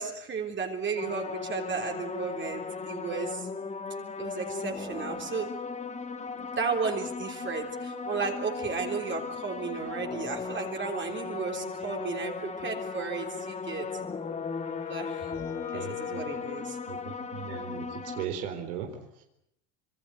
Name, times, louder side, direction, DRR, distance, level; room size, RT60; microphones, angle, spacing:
voice 1, 0.0-3.5 4.2-5.5 6.4-13.9 14.9-15.3 15.7-16.8, right 5 dB, 25° right, 2 dB, 3.6 m, -34 dB
sound 1, 1.0-18.3, left 4 dB, 15° left, 1.7 m, -37 dB
Wind instrument woodwind instrument, 13.8-17.7, left 17 dB, 80° left, 2.7 m, -41 dB
voice 2, 15.3-16.3 16.9-19.2, right 8 dB, 80° right, 5 dB, 4.2 m, -38 dB
26.5 x 21.5 x 8.1 m, 0.75 s
supercardioid pair, 130°, 44 cm